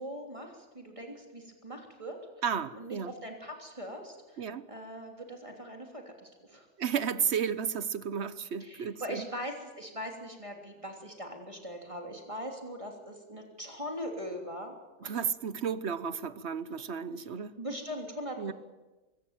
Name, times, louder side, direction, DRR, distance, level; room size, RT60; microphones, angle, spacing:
voice 1, 0.0-2.2 2.7-6.7 8.6-14.7 15.0-15.1 17.6-18.5, equal, 20° right, 3.3 m, -41 dB
voice 2, 2.4-3.1 4.4-4.7 6.8-9.2 15.0-17.6 18.4-18.5, right 7 dB, 50° right, 1.0 m, -33 dB
23.0 x 17.0 x 9.0 m
omnidirectional pair, 1.7 m